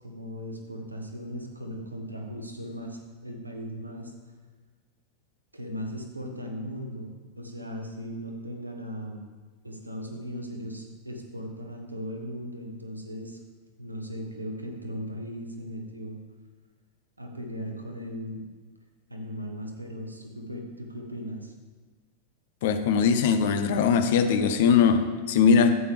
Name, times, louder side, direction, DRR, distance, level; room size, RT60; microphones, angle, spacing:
voice 1, 0.0-4.1 5.5-9.2 9.6-13.4 13.8-16.2 17.2-18.4 19.1-21.5, equal, 85° right, 2 dB, 1.3 m, -37 dB
voice 2, 22.6-25.7, left 6 dB, 55° left, 9 dB, 0.7 m, -21 dB
12.5 x 8.4 x 3.4 m, 1.4 s
figure-of-eight pair, 90°, 0 cm